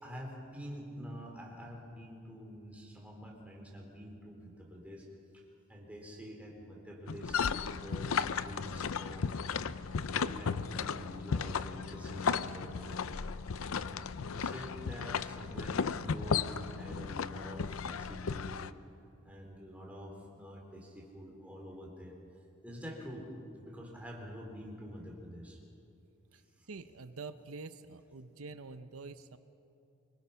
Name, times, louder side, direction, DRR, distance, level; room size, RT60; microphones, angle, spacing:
voice 1, 0.0-5.1 5.3-5.4 5.7-9.3 10.0-13.0 13.7-14.0 14.3-18.6 19.2-22.1 22.6-23.3 23.6-25.6 26.3-26.7, equal, 5° right, -1 dB, 3.9 m, -47 dB
Footsteps Walking Boot Pontoon to Standstill, 7.1-18.7, left 6 dB, 75° left, 0.6 m, -35 dB
voice 2, 26.7-29.4, right 4 dB, 85° right, 11 dB, 0.8 m, -46 dB
24.5 x 22.5 x 5.8 m, 2.7 s
head